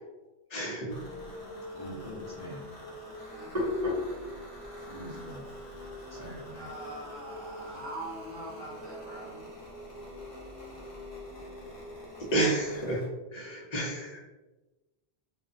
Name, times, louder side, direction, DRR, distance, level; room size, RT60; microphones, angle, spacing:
voice 1, 0.5-1.0 12.3-13.0 13.3-14.2, right 2 dB, 45° left, -3 dB, 0.6 m, -30 dB
sound 1, 0.9-13.1, left 1 dB, 65° left, 1.0 m, -44 dB
voice 2, 1.7-2.6 4.8-5.4 6.1-6.7, equal, 15° left, -10 dB, 1.3 m, -44 dB
Hands, 2.7-8.7, left 2 dB, 45° right, 0.9 m, -38 dB
voice 3, 6.6-9.4, right 1 dB, 70° right, -5 dB, 0.9 m, -42 dB
2.4 x 2.2 x 2.5 m, 1.1 s
omnidirectional pair, 1.0 m